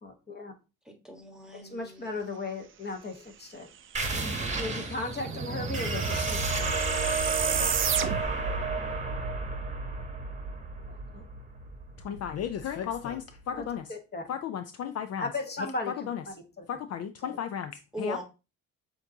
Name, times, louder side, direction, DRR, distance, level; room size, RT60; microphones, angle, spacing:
voice 1, 0.0-0.5 1.6-3.7 4.6-6.7 10.9-11.2 13.5-14.2 15.2-16.1 16.6-16.7 17.2-17.4, left 2 dB, 35° left, 1.2 m, -36 dB
voice 2, 0.8-2.2 17.9-18.2, right 1 dB, ahead, 1.2 m, -40 dB
sound 1, 3.9-13.2, right 3 dB, 25° right, 1.0 m, -32 dB
sound 2, 4.3-8.5, right 8 dB, 40° right, 0.5 m, -33 dB
voice 3, 12.0-13.8 14.3-15.3 16.0-16.2 16.7-18.2, left 9 dB, 55° left, 0.4 m, -34 dB
6.8 x 2.6 x 2.7 m
cardioid pair, 90°, 30 cm